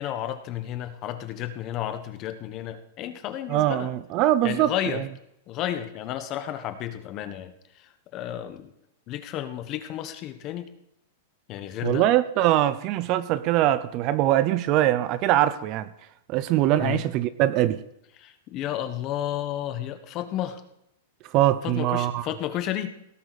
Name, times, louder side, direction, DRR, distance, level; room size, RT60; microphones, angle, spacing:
voice 1, 0.0-3.9 4.4-5.1 5.5-8.7 9.1-10.7 11.5-12.0 16.8-17.0 18.2-20.6 21.6-22.9, left 12 dB, 30° left, 9 dB, 1.2 m, -32 dB
voice 2, 3.5-5.0 11.8-15.9 16.3-17.8 21.3-22.3, right 13 dB, 35° right, 15 dB, 0.6 m, -22 dB
17.5 x 11.0 x 4.2 m, 0.79 s
supercardioid pair, 160°, 0 cm